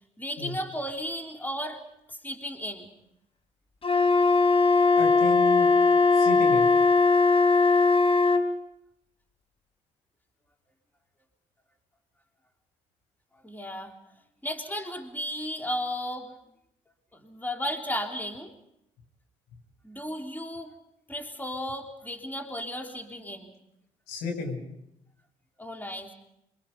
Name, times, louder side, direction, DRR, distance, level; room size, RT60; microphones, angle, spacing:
voice 1, 0.2-1.8 2.1-2.9 13.4-13.9 14.4-16.3 17.1-18.5 19.8-20.7 21.1-23.5 25.6-26.1, equal, 10° left, 3 dB, 3.4 m, -34 dB
Wind instrument woodwind instrument, 3.8-8.5, left 4 dB, 35° left, 3.8 m, -20 dB
voice 2, 4.9-5.7 6.1-6.7 24.1-24.6, left 4 dB, 75° left, 2 dB, 6.8 m, -33 dB
27.5 x 24.5 x 5.4 m, 0.79 s
hypercardioid pair, 50°, 16 cm